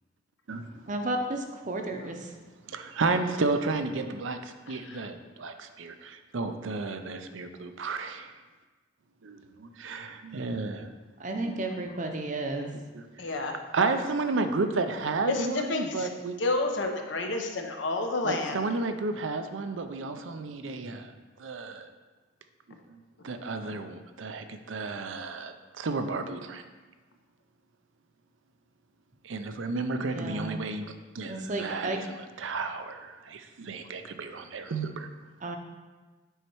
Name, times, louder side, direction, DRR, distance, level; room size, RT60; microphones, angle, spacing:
voice 1, 0.8-2.3 11.2-12.7 20.8-20.9 30.1-30.6 31.3-32.0 35.4-35.6, right 2 dB, 40° right, 4 dB, 0.7 m, -33 dB
voice 2, 2.7-8.3 9.2-10.9 11.4-11.7 12.9-13.3 13.7-16.4 18.2-21.1 21.4-21.9 22.9-26.6 29.2-32.0 32.4-35.1, right 3 dB, 85° right, 8 dB, 0.6 m, -32 dB
voice 3, 4.7-5.0 13.2-13.6 15.3-16.1 16.4-18.7 23.6-23.7, left 3 dB, 75° left, 4 dB, 0.8 m, -30 dB
8.0 x 4.3 x 4.6 m, 1.3 s
head